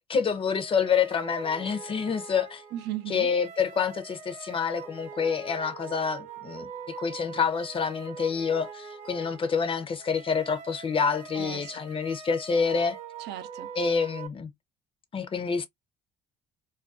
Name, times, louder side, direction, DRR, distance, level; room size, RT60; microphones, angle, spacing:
voice 1, 0.1-2.6 3.1-6.7 7.0-13.0 13.8-14.5 15.1-15.7, left 6 dB, 35° left, 0.5 m, -27 dB
sound 1, 0.6-14.3, right 6 dB, 45° right, 0.8 m, -43 dB
voice 2, 2.7-3.3 11.3-11.8 13.2-13.7, right 13 dB, 80° right, 0.6 m, -37 dB
2.4 x 2.2 x 2.4 m
cardioid pair, 110°, 17 cm